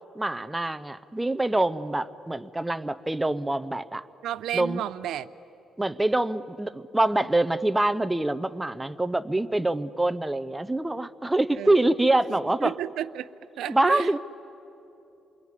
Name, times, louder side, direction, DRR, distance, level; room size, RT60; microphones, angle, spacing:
voice 1, 0.2-4.0 4.5-4.8 5.8-12.7 13.7-14.2, right 2 dB, 10° right, 13 dB, 0.6 m, -25 dB
voice 2, 4.2-5.3 11.5-11.8 12.3-13.3 13.6-14.1, right 11 dB, 85° right, 12 dB, 0.6 m, -32 dB
27.5 x 22.0 x 9.8 m, 3.0 s
cardioid pair, 160°, 0 cm